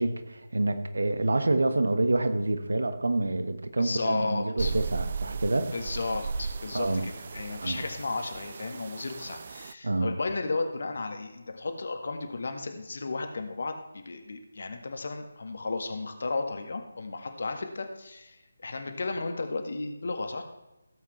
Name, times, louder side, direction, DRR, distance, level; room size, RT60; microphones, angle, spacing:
voice 1, 0.0-5.7 6.7-7.0 7.6-7.8 9.8-10.1, right 2 dB, 60° right, 9 dB, 1.3 m, -27 dB
voice 2, 3.8-4.8 5.7-20.4, left 3 dB, 50° left, 6 dB, 1.6 m, -34 dB
sound 1, 4.6-9.7, right 5 dB, 35° right, 0.4 m, -36 dB
16.5 x 8.2 x 3.2 m, 1.0 s
figure-of-eight pair, 155°, 0 cm